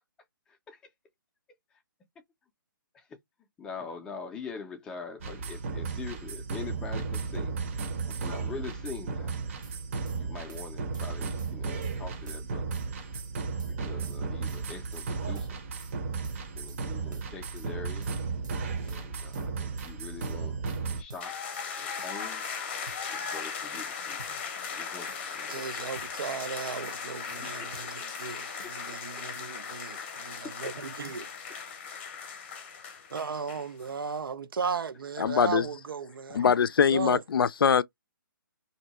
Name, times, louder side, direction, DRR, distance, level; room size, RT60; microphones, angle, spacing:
voice 1, 0.5-0.8 2.9-3.1 3.6-7.6 8.2-9.4 10.1-12.8 13.8-15.6 16.5-18.1 18.8-21.4 21.8-22.4 23.1-24.3 24.6-25.7 27.6-27.7 28.9-29.0 29.9-30.0, left 5 dB, 5° left, 0.4 m, -43 dB
sound 1, 5.2-21.0, right 4 dB, 35° right, 0.7 m, -34 dB
sound 2, 9.6-10.2 10.5-11.1 11.4-12.0 12.3-12.9 13.1-13.8 14.0-15.1 15.4-16.0 16.2-16.8 17.1-17.7 18.0-18.6 18.9-19.9 20.2-20.8 21.1-21.7 22.0-22.6 22.9-23.5 23.7-24.8 25.1-25.7 26.0-26.6 26.8-27.4 27.7-28.3 28.6-28.8, right 3 dB, 55° right, 0.9 m, -50 dB
sound 3, 21.2-33.9, left 6 dB, 30° left, 0.7 m, -38 dB
voice 2, 25.5-31.3 33.1-36.5 36.9-37.2, right 6 dB, 80° right, 0.6 m, -36 dB
voice 3, 35.2-35.6 36.3-37.8, left 7 dB, 80° left, 0.4 m, -23 dB
2.7 x 2.1 x 4.1 m
hypercardioid pair, 165°, 12 cm